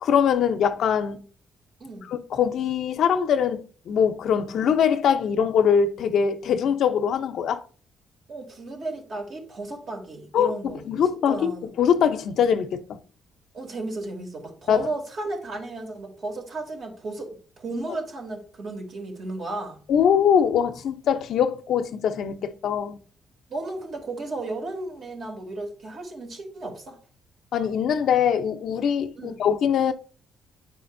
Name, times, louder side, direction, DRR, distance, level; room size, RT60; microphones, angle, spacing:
voice 1, 0.0-1.2 2.1-7.6 10.3-10.5 10.9-13.0 14.7-14.9 19.9-23.0 27.5-29.9, left 7 dB, 70° left, 0.7 m, -22 dB
voice 2, 8.3-10.8 11.3-11.7 13.5-19.8 23.5-27.0 29.2-29.4, right 2 dB, 55° right, 3.0 m, -34 dB
9.2 x 4.9 x 2.7 m
cardioid pair, 90°, 0 cm